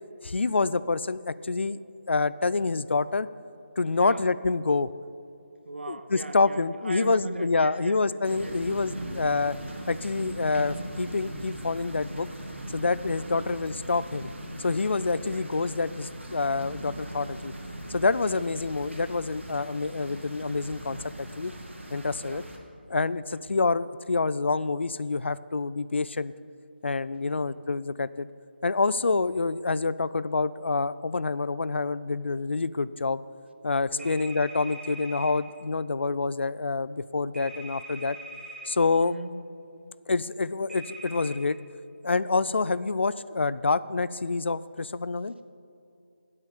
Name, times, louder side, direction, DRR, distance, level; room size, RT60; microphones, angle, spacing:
voice 1, 0.2-1.8 2.1-3.3 3.8-4.9 5.9-9.6 9.9-12.3 12.7-14.3 14.6-17.5 17.9-21.5 21.9-22.4 22.9-26.3 26.8-28.3 28.6-33.2 33.6-38.2 38.7-39.1 40.1-41.6 42.0-45.3, left 3 dB, 75° left, 17 dB, 0.4 m, -27 dB
voice 2, 3.9-4.3 5.6-8.0 8.4-8.6 9.0-9.3 13.1-13.5 15.1-15.5 18.3-18.4 22.2-22.5 23.3-23.4 27.2-27.6 33.9-34.2 39.0-39.4 42.5-42.6, right 2 dB, 65° right, 9 dB, 0.9 m, -40 dB
sound 1, 8.2-22.6, right 1 dB, 90° right, 2.1 m, -40 dB
sound 2, 34.0-35.3 37.3-38.7 40.7-41.3, right 2 dB, ahead, 1.2 m, -42 dB
14.0 x 8.2 x 5.1 m, 2.6 s
figure-of-eight pair, 170°, 6 cm